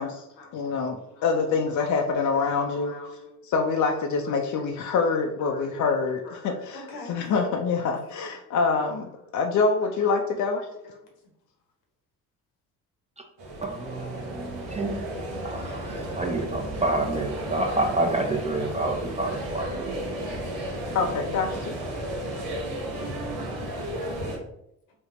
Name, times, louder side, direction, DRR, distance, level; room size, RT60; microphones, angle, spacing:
voice 1, 0.0-0.6 1.0-1.4 1.7-3.4 4.0-8.4 9.8-11.0 19.7-19.8 22.3-22.9, left 2 dB, 75° left, 1 dB, 1.0 m, -44 dB
voice 2, 0.5-2.9 3.4-10.6 20.9-22.0, left 4 dB, 45° left, 3 dB, 0.5 m, -26 dB
sound 1, 13.4-24.4, right 1 dB, 75° right, 0.9 m, -33 dB
voice 3, 13.6-15.0 15.4-20.0, right 2 dB, 15° right, 2 dB, 0.5 m, -28 dB
3.5 x 2.0 x 3.6 m, 0.80 s
hypercardioid pair, 50°, 44 cm